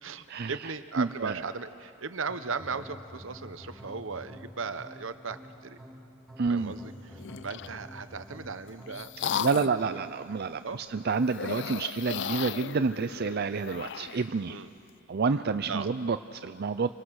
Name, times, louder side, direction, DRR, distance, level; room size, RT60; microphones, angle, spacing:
voice 1, 0.0-5.8 6.5-9.5 9.8-10.0 10.6-10.8 14.5-14.7 15.7-15.9, right 4 dB, 75° right, 11 dB, 1.0 m, -37 dB
voice 2, 1.0-1.4 6.4-6.8 9.4-14.6 15.1-16.9, right 4 dB, 55° right, 9 dB, 0.5 m, -29 dB
sound 1, 2.3-10.1, equal, ahead, 2.4 m, -48 dB
sound 2, 7.2-7.8 8.4-9.9 11.2-14.3, left 8 dB, 65° left, 0.5 m, -36 dB
27.5 x 25.0 x 6.5 m, 2.6 s
head